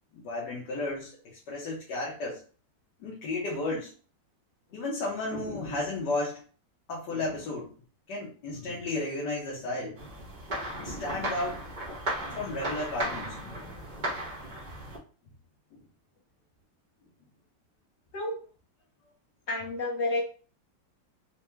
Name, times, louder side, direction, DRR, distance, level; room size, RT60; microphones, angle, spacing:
voice 1, 0.1-2.4 3.0-3.9 4.7-6.4 6.9-7.7 8.1-10.0 10.5-11.8 12.2-13.6 15.7-15.8, left 2 dB, 65° left, -5 dB, 1.5 m, -33 dB
sound 1, 10.0-15.0, right 1 dB, 45° right, 0.6 m, -36 dB
voice 2, 19.5-20.2, left 2 dB, 45° left, -2 dB, 1.1 m, -30 dB
4.6 x 2.3 x 3.1 m, 0.39 s
omnidirectional pair, 2.0 m